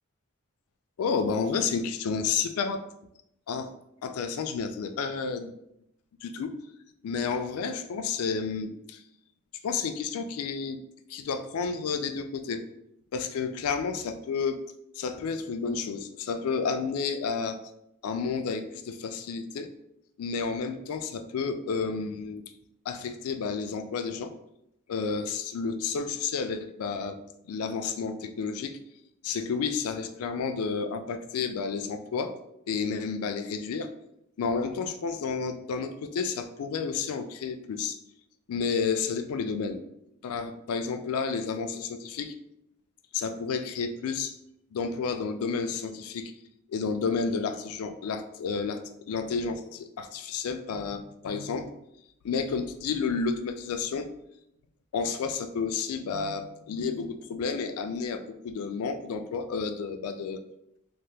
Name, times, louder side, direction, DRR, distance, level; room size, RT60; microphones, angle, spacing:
voice 1, 1.0-2.8 3.5-3.7 4.0-5.6 6.2-6.6 7.0-9.0 9.6-10.8 11.1-12.6 13.1-14.6 15.0-17.6 18.0-19.7 20.2-22.5 22.9-24.3 24.9-27.2 27.5-28.8 29.2-32.4 32.7-33.9 34.4-38.0 38.5-39.8 40.2-42.4 43.1-44.4 44.7-46.3 46.7-51.7 52.2-54.1 54.9-60.4, left 5 dB, 85° left, 8 dB, 0.3 m, -31 dB
2.8 x 2.2 x 3.2 m, 0.78 s
head